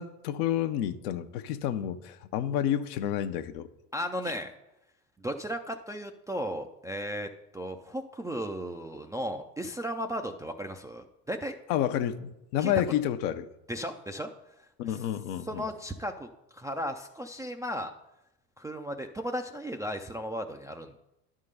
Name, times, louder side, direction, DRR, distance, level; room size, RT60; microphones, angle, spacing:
voice 1, 0.0-3.7 11.7-13.5 14.8-15.7, left 10 dB, 70° left, 0.8 m, -30 dB
voice 2, 3.9-4.5 5.2-7.3 7.5-11.6 12.6-12.7 13.7-14.3 14.9-15.0 15.5-17.9 18.6-21.0, equal, 10° right, 0.3 m, -35 dB
11.0 x 3.8 x 6.5 m
hypercardioid pair, 70°, 49 cm